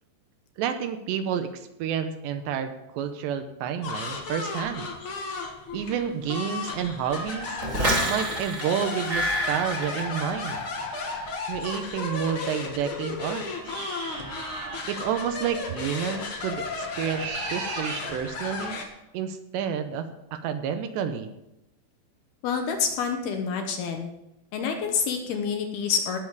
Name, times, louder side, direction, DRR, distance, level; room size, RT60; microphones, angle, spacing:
voice 1, 0.6-4.9 5.7-7.6 8.0-10.6 11.4-13.5 14.9-18.8 19.1-21.3, right 8 dB, 80° right, 8 dB, 2.9 m, -30 dB
sound 1, 3.8-18.8, left 4 dB, 85° left, 1.1 m, -34 dB
sound 2, 7.6-10.7 11.0-11.4, right 1 dB, 30° right, 2.1 m, -28 dB
sound 3, 13.6-14.9 17.0-18.1, right 5 dB, 60° right, 3.0 m, -36 dB
voice 2, 22.4-24.1 24.5-26.2, left 6 dB, 70° left, 4 dB, 2.6 m, -27 dB
18.5 x 7.0 x 4.7 m, 0.88 s
omnidirectional pair, 5.2 m